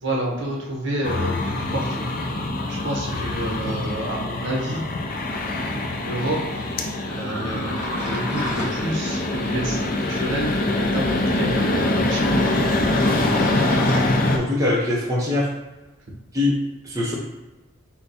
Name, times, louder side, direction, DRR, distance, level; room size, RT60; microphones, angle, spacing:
voice 1, 0.0-2.0 2.7-4.8 6.0-6.8 7.1-10.5 10.8-12.8 13.2-13.8, right 1 dB, 60° right, -2 dB, 1.0 m, -29 dB
sound 1, 1.0-14.4, left 2 dB, 45° left, 0.5 m, -24 dB
sound 2, 5.1-14.4, equal, 15° left, 0.9 m, -36 dB
voice 2, 14.3-15.5 16.3-16.5 16.8-17.1, left 2 dB, 15° right, -5 dB, 0.6 m, -22 dB
4.4 x 2.2 x 4.0 m, 1.1 s
head